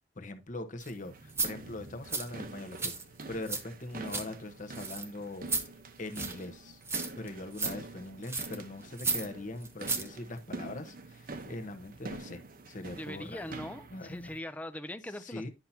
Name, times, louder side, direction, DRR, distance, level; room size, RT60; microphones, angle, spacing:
voice 1, 0.1-3.0 3.3-5.7 6.0-6.8 7.2-12.4 12.7-13.5 13.9-14.3 15.2-15.5, left 2 dB, 45° left, 1.0 m, -42 dB
sound 1, 0.8-0.9 1.3-1.5 2.1-2.3 2.7-3.6 3.9-4.3 4.7-5.1 5.5-5.7 6.1-6.4 6.9-7.3 7.6-7.7 8.2-8.6 9.0-9.3 9.6-10.1 10.4-10.5, right 4 dB, 15° right, 0.8 m, -33 dB
sound 2, 0.9-14.4, right 2 dB, 50° right, 0.9 m, -46 dB
voice 2, 12.9-15.5, left 1 dB, 10° left, 0.5 m, -41 dB
10.5 x 5.8 x 2.8 m
head